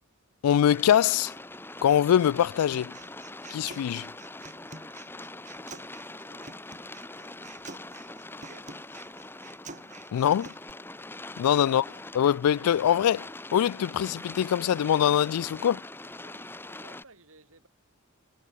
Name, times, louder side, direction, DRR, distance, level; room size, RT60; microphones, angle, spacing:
voice 1, 0.4-1.3 1.8-2.9 3.5-4.1 10.1-10.5 11.4-11.8 12.1-15.8, left 9 dB, 85° left, 0.3 m, -23 dB
sound 1, 0.7-17.0, left 2 dB, 10° left, 1.3 m, -43 dB
Human voice, 2.7-10.7, right 4 dB, 35° right, 4.8 m, -48 dB
voice 2, 6.3-6.8 8.3-8.8 16.1-17.7, right 3 dB, 70° right, 5.4 m, -58 dB
head